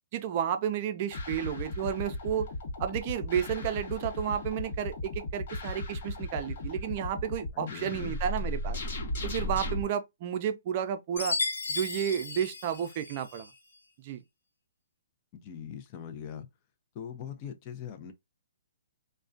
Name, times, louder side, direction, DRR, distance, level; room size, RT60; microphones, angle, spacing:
voice 1, 0.1-2.5 2.8-8.8 9.2-11.4 11.7-13.5 14.0-14.2, right 9 dB, 35° right, 0.4 m, -32 dB
sound 1, 1.1-9.8, left 1 dB, 55° left, 0.9 m, -36 dB
voice 2, 7.5-8.2 15.3-16.5 16.9-18.1, left 8 dB, 30° left, 0.5 m, -41 dB
Chime, 11.2-13.5, left 3 dB, 90° left, 0.7 m, -34 dB
2.3 x 2.1 x 2.5 m
hypercardioid pair, 150°, 0 cm